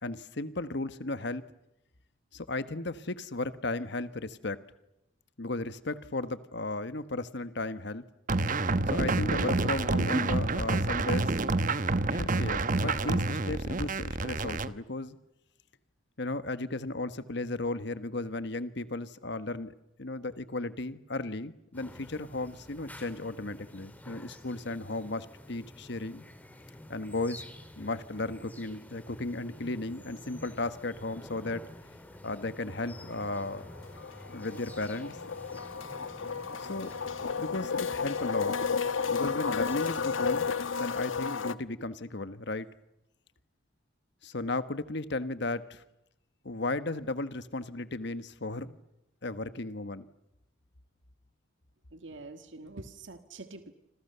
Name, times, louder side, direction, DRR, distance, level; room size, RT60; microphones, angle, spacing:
voice 1, 0.0-1.4 2.3-4.6 5.4-8.0 8.9-11.3 12.1-15.2 16.2-26.2 26.9-27.4 27.8-31.6 32.2-33.7 34.3-35.2 36.6-36.9 37.4-38.5 39.1-40.5 40.7-42.7 44.2-45.8 46.4-48.8 49.2-50.1, left 2 dB, 60° left, 13 dB, 1.3 m, -35 dB
sound 1, 8.3-14.7, right 2 dB, 45° right, 1.1 m, -28 dB
sound 2, 21.7-40.7, left 1 dB, 10° left, 3.5 m, -49 dB
sound 3, 32.9-33.0 33.3-41.5, left 5 dB, 90° left, 1.0 m, -32 dB
voice 2, 51.9-53.7, right 2 dB, 70° right, 8 dB, 1.7 m, -45 dB
29.0 x 26.5 x 6.9 m, 0.88 s
head